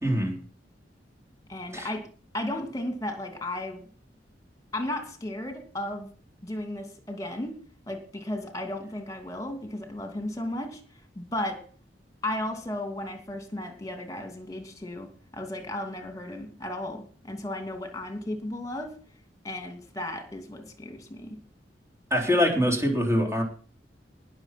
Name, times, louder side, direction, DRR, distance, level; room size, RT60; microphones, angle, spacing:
voice 1, 0.0-0.4 1.7-1.9 22.1-23.4, equal, 15° right, 1 dB, 3.7 m, -24 dB
voice 2, 1.5-2.1 2.3-3.8 4.7-6.1 6.4-7.6 7.9-10.8 11.1-11.6 12.2-15.1 15.3-19.0 19.4-21.4, left 1 dB, 20° left, 6 dB, 2.7 m, -34 dB
19.0 x 6.7 x 6.1 m, 0.40 s
head